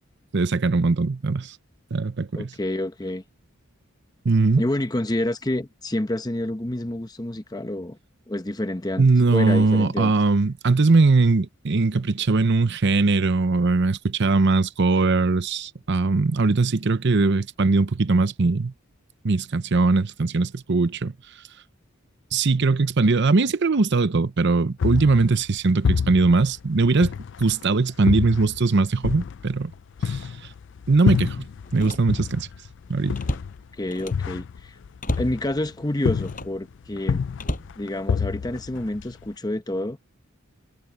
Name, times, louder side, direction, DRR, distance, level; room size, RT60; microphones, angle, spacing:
voice 1, 0.3-1.6 1.9-2.5 4.2-4.6 9.0-18.7 19.2-21.1 22.3-27.1 27.4-29.7 30.0-30.3 30.9-31.4 31.7-32.5 32.9-33.2, right 3 dB, 55° right, 0.7 m, -20 dB
voice 2, 2.4-3.2 4.6-8.0 8.3-9.1 9.3-10.1 33.8-34.8 35.2-37.2 37.8-40.0, left 1 dB, 20° left, 0.9 m, -28 dB
sound 1, 24.8-27.6 28.1-31.8 32.1-35.7 36.1-36.6 37.0-39.3, left 6 dB, 60° left, 0.4 m, -27 dB
Slam, 29.6-29.8 30.2-30.3 31.6-32.5 32.8-34.4 35.0-35.4 36.2-36.6 37.3-38.4 39.0-39.3, left 1 dB, 40° left, 7.2 m, -33 dB
head